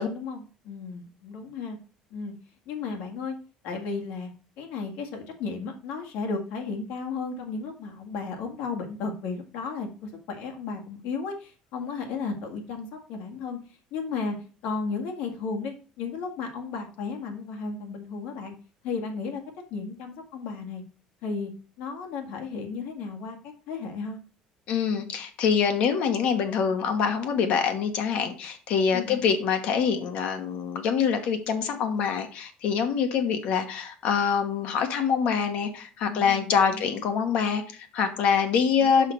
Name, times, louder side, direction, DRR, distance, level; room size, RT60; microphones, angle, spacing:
voice 1, 0.0-1.8 2.1-2.3 2.7-3.4 3.6-4.3 4.6-13.6 13.9-14.4 14.6-18.5 18.8-19.4 19.7-20.8 21.2-21.5 21.8-23.4 23.7-24.2 28.9-29.2 36.1-37.0 38.8-39.1, left 4 dB, 80° left, 3 dB, 1.9 m, -34 dB
voice 2, 24.7-39.1, left 6 dB, 60° left, 7 dB, 1.2 m, -25 dB
5.7 x 4.5 x 6.4 m, 0.37 s
cardioid pair, 160°, 3 cm